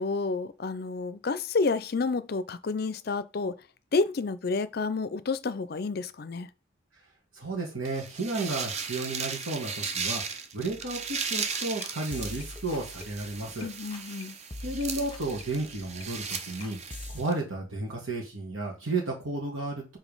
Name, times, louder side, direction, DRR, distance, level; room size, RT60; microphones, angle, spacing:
voice 1, 0.0-3.6 3.9-6.5 13.6-14.3, left 4 dB, 50° left, 0.5 m, -30 dB
voice 2, 7.3-13.7 14.6-16.8 17.1-20.0, right 2 dB, 85° right, 2.0 m, -33 dB
sound 1, 7.8-17.3, right 5 dB, 35° right, 0.7 m, -36 dB
sound 2, 10.7-13.6 13.9-14.2 14.5-17.2, left 2 dB, 25° left, 0.9 m, -44 dB
5.2 x 3.7 x 5.4 m
head